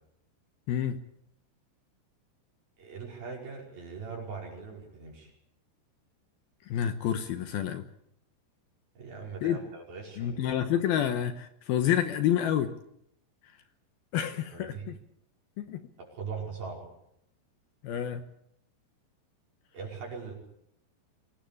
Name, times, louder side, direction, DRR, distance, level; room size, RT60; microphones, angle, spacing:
voice 1, 0.7-1.0 6.7-7.8 9.4-9.6 10.2-12.7 14.1-15.0 15.6-15.8 17.8-18.2, left 10 dB, 70° left, 10 dB, 2.6 m, -28 dB
voice 2, 2.8-5.3 9.0-10.6 14.5-14.9 16.0-16.8 19.7-20.3, right 5 dB, 55° right, 0 dB, 7.0 m, -41 dB
24.0 x 18.5 x 8.5 m, 0.74 s
omnidirectional pair, 5.1 m